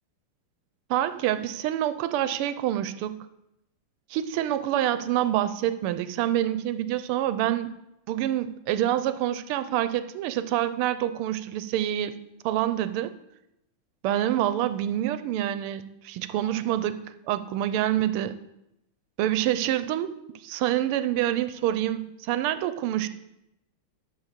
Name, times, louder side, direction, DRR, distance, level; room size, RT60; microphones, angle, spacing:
voice 1, 0.9-3.2 4.1-7.7 8.1-12.1 12.4-13.1 14.0-17.0 17.3-18.3 19.2-23.1, right 12 dB, 85° right, 12 dB, 1.5 m, -27 dB
10.5 x 4.1 x 7.3 m, 0.85 s
omnidirectional pair, 2.4 m